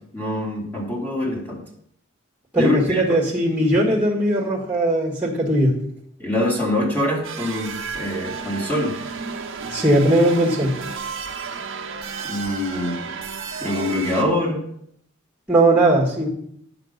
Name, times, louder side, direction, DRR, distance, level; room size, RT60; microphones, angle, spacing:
voice 1, 0.1-1.6 2.6-3.0 6.2-8.9 12.3-13.0 13.6-14.6, left 1 dB, 10° left, -3 dB, 2.4 m, -24 dB
voice 2, 2.5-5.7 9.7-10.7 15.5-16.3, right 1 dB, 5° right, -3 dB, 1.8 m, -18 dB
sound 1, 7.2-14.2, right 5 dB, 60° right, 1.0 m, -32 dB
9.0 x 6.9 x 5.3 m, 0.69 s
head